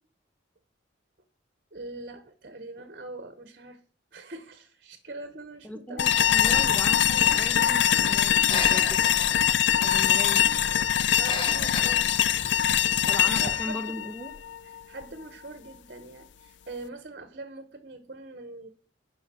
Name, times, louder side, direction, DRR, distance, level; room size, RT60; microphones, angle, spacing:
voice 1, 1.7-3.8 4.1-6.5 11.2-12.1 13.2-14.1 14.6-18.7, right 2 dB, 50° right, 1.1 m, -42 dB
voice 2, 5.6-9.0 9.8-10.5 13.0-14.3, left 1 dB, 5° left, 1.4 m, -38 dB
sound 1, 6.0-15.0, left 10 dB, 65° left, 0.4 m, -23 dB
Breathing, 6.0-13.7, left 2 dB, 25° left, 1.0 m, -37 dB
11.5 x 5.2 x 8.5 m
head